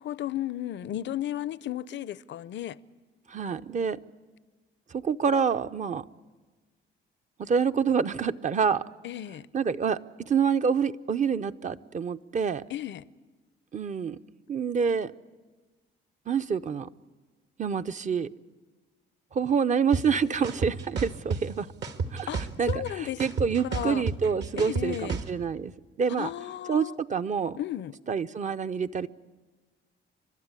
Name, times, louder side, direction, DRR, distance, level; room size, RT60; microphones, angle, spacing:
voice 1, 0.0-2.8 9.0-9.5 12.7-13.1 22.3-23.3 23.6-24.0 24.6-25.2 26.1-27.0 27.6-27.9, left 12 dB, 65° left, 0.6 m, -34 dB
voice 2, 3.3-4.0 4.9-6.0 7.4-8.8 9.5-10.0 10.3-12.6 13.7-14.2 14.5-15.1 16.3-16.9 17.6-18.3 19.3-21.7 22.1-22.3 22.6-25.7 26.0-26.3 26.7-27.6 28.1-29.1, right 6 dB, 40° right, 0.7 m, -27 dB
sound 1, 19.9-20.0 20.4-21.4 21.8-22.9 23.2-25.3, right 4 dB, 65° right, 1.6 m, -30 dB
29.5 x 12.5 x 9.8 m
cardioid pair, 90°, 20 cm